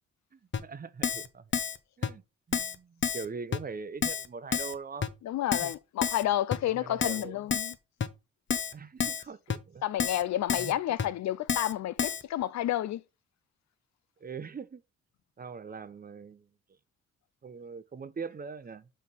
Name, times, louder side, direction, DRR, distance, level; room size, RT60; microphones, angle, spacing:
voice 1, 0.3-1.5 2.0-2.2 2.5-5.1 5.6-5.7 6.6-7.4 8.7-9.8 10.6-10.8 14.2-14.8 15.4-16.5 17.4-18.9, right 5 dB, 30° right, 0.8 m, -42 dB
Keyboard (musical), 0.5-0.6 1.0-1.3 1.5-1.8 2.0-2.1 2.5-2.8 3.0-3.3 3.5-3.6 4.0-4.3 4.5-4.7 5.0-5.1 5.5-5.7 6.0-6.2 6.5-6.6 7.0-7.2 7.5-7.7 8.0-8.1 8.5-8.7 9.0-9.2 9.5-9.6 10.0-10.2 10.5-10.7 11.0-11.1 11.5-11.7 12.0-12.2, left 7 dB, 40° left, 1.0 m, -29 dB
voice 2, 5.2-7.7 9.8-13.0, left 13 dB, 65° left, 0.5 m, -30 dB
5.6 x 5.4 x 6.0 m
cardioid pair, 90°, 30 cm